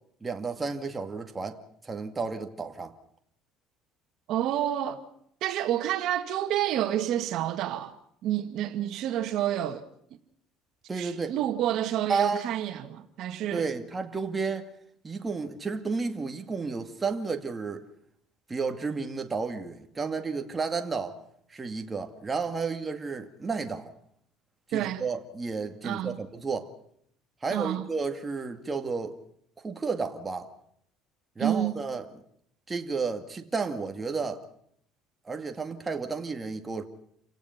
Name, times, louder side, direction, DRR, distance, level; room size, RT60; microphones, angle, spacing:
voice 1, 0.2-1.6 1.8-2.9 10.9-11.3 12.1-12.4 13.5-14.7 15.0-17.9 18.5-21.2 21.5-23.9 24.7-26.7 27.4-29.1 29.6-30.5 31.4-32.1 32.7-34.4 35.2-36.8, right 4 dB, 20° right, 2.2 m, -32 dB
voice 2, 4.3-5.0 5.4-8.0 8.2-9.8 10.9-13.7 24.7-25.0 25.8-26.2 27.5-27.8 31.4-31.7, right 11 dB, 60° right, 1.9 m, -29 dB
29.0 x 17.5 x 5.9 m
cardioid pair, 125°, 0 cm